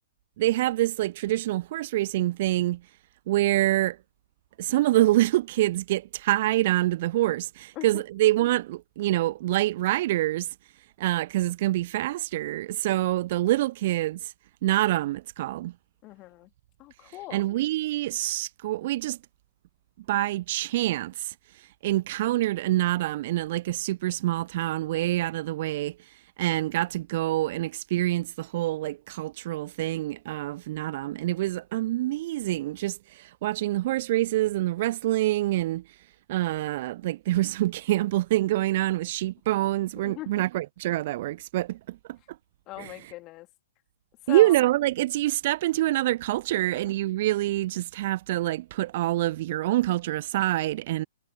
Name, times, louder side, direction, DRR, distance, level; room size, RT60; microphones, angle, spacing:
voice 1, 0.4-2.8 3.3-4.0 4.6-10.5 11.0-14.3 14.6-15.7 17.3-19.2 20.1-35.8 36.3-42.2 42.8-43.1 44.3-51.0, right 16 dB, 45° right, 0.5 m, -26 dB
voice 2, 16.0-16.5 16.8-17.4 40.0-40.4 42.7-43.5 44.3-44.5 46.7-46.8 50.9-51.0, left 19 dB, 30° left, 2.6 m, -40 dB
figure-of-eight pair, 115°, 0 cm